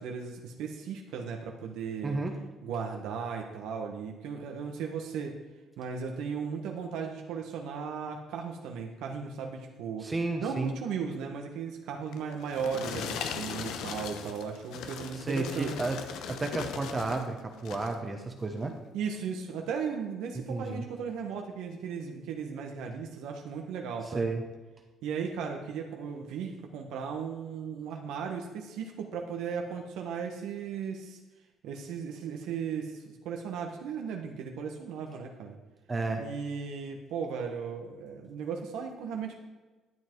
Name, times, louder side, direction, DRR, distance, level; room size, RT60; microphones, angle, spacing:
voice 1, 0.0-2.2 2.6-5.4 5.8-10.1 10.4-15.7 18.9-24.3 25.0-31.2 31.6-35.6 36.2-39.4, right 6 dB, 85° right, 2 dB, 1.4 m, -36 dB
voice 2, 2.0-2.3 10.0-10.7 15.2-16.0 16.3-18.8 20.5-20.8 24.1-24.4 35.9-36.2, right 3 dB, 25° right, 4 dB, 1.2 m, -32 dB
sound 1, 12.1-17.3 17.6-18.0 18.6-18.7, left 7 dB, 80° left, 0.9 m, -39 dB
12.0 x 7.7 x 4.7 m, 1.2 s
cardioid pair, 115°, 0 cm